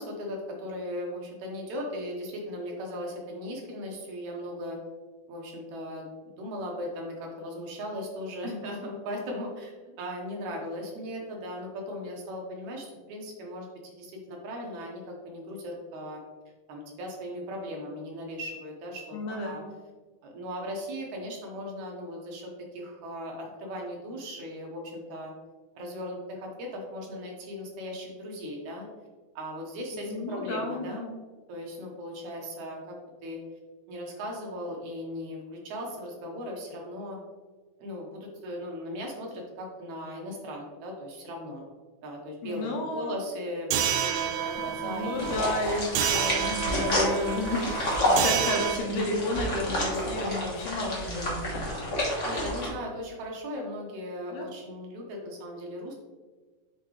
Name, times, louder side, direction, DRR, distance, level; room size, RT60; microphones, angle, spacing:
voice 1, 0.0-4.8 5.3-6.1 6.4-16.2 16.7-19.6 20.2-25.3 25.8-28.9 29.4-31.1 31.5-33.4 33.9-37.2 37.8-41.7 42.0-45.4 46.7-47.1 52.2-55.9, equal, 70° right, 0 dB, 2.2 m, -38 dB
voice 2, 19.1-19.6 29.9-31.1 42.4-43.2 44.7-51.7 54.3-54.5, left 2 dB, 75° left, 1 dB, 2.2 m, -32 dB
sound 1, 43.7-48.8, right 9 dB, 85° right, 1.5 m, -29 dB
sound 2, 45.2-52.7, left 1 dB, 55° left, 0.8 m, -30 dB
7.8 x 3.9 x 3.1 m, 1.3 s
omnidirectional pair, 3.7 m